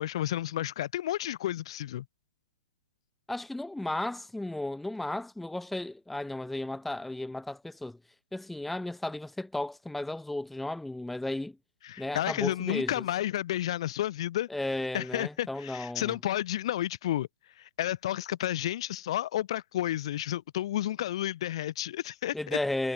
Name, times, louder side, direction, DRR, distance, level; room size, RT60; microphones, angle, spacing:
voice 1, 0.0-2.0 11.8-14.5 14.9-17.3 17.6-22.3, left 13 dB, 55° left, 4.5 m, -31 dB
voice 2, 3.3-8.0 8.3-11.5 12.0-13.0 14.5-16.2 22.3-22.9, left 1 dB, 5° left, 2.3 m, -34 dB
hypercardioid pair, 130°, 3 cm